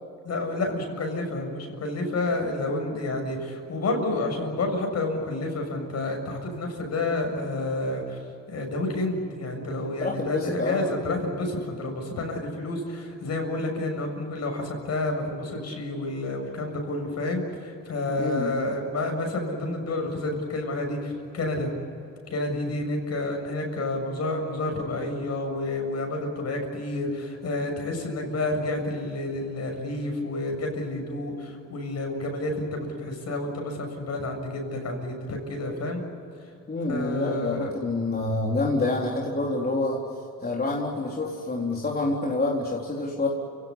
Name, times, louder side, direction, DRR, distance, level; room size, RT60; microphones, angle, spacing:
voice 1, 0.2-8.2 8.5-21.7 22.3-36.0 36.9-37.7, left 2 dB, 60° left, 3 dB, 7.1 m, -29 dB
voice 2, 10.0-10.9 18.2-18.6 36.7-40.0 40.4-43.3, left 2 dB, 30° left, -2 dB, 3.9 m, -27 dB
29.5 x 17.5 x 9.8 m, 2.6 s
cardioid pair, 90°, 30 cm